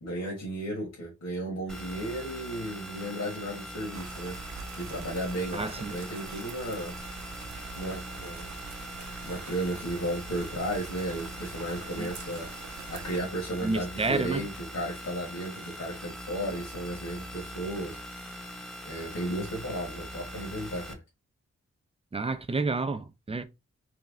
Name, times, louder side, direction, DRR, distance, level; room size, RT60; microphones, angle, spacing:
voice 1, 0.0-4.4 4.8-6.9 7.7-8.6 9.2-18.5 18.8-21.0, right 1 dB, 60° left, 1.6 m, -34 dB
sound 1, 1.7-20.9, equal, ahead, 0.9 m, -42 dB
sound 2, 3.9-13.2, right 7 dB, 65° right, 0.6 m, -45 dB
voice 2, 5.5-5.9 12.0-12.1 13.6-14.4 22.1-23.4, right 3 dB, 20° right, 0.5 m, -30 dB
3.4 x 3.1 x 3.7 m
wide cardioid pair, 105°, 30 cm